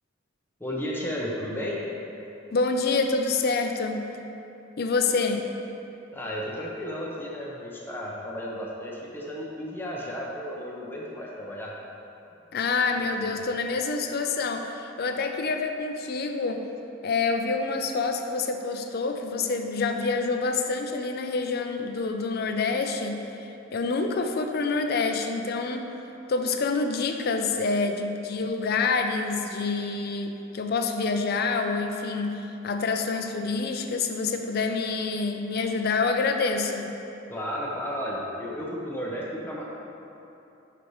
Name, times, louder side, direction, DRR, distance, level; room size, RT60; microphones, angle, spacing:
voice 1, 0.6-1.8 6.1-11.7 13.0-13.3 37.3-39.6, equal, 10° left, -4 dB, 0.8 m, -33 dB
voice 2, 2.5-4.0 4.8-5.5 12.5-16.6 17.0-23.2 23.7-25.9 26.3-32.3 32.6-36.9, left 4 dB, 55° left, 5 dB, 0.5 m, -27 dB
8.2 x 6.1 x 3.1 m, 2.9 s
head